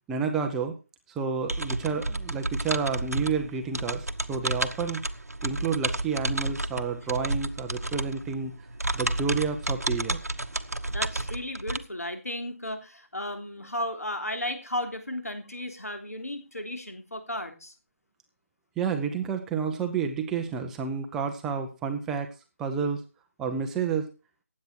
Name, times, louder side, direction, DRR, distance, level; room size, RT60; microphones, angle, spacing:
voice 1, 0.1-0.8 1.1-5.0 5.4-8.5 8.9-10.2 18.8-22.3 22.6-23.0 23.4-24.1, right 6 dB, 5° right, 4 dB, 0.6 m, -30 dB
sound 1, 1.5-11.8, right 2 dB, 85° right, 1.2 m, -31 dB
voice 2, 10.9-17.7, left 1 dB, 75° left, 7 dB, 3.5 m, -34 dB
15.5 x 9.4 x 4.5 m, 0.31 s
figure-of-eight pair, 160°, 8 cm